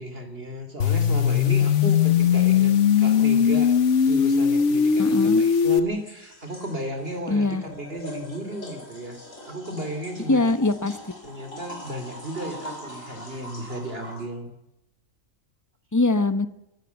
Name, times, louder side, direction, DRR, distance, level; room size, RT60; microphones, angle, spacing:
voice 1, 0.0-3.7 4.0-10.5 11.2-14.5, right 1 dB, 45° right, 6 dB, 3.2 m, -34 dB
sound 1, 0.8-5.8, left 7 dB, 65° left, 1.3 m, -19 dB
sound 2, 3.2-3.3 5.0-14.3, left 1 dB, 80° left, 5.2 m, -42 dB
voice 2, 5.0-5.4 7.3-7.6 10.3-11.0 15.9-16.5, left 2 dB, 15° left, 13 dB, 1.1 m, -22 dB
24.5 x 15.5 x 8.2 m, 0.89 s
omnidirectional pair, 1.4 m